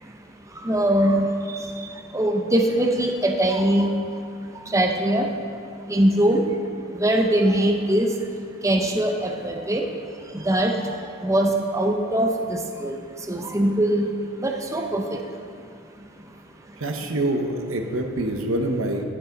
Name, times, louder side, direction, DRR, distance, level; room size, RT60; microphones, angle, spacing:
voice 1, 0.6-1.3 2.1-3.9 4.7-5.2 5.9-6.4 7.0-8.1 8.6-9.8 10.3-10.7 11.2-13.0 13.3-14.1 14.4-15.0, right 1 dB, 15° right, 2 dB, 0.6 m, -21 dB
voice 2, 16.8-19.0, right 1 dB, 85° right, 4 dB, 1.0 m, -25 dB
11.5 x 8.4 x 3.9 m, 2.4 s
head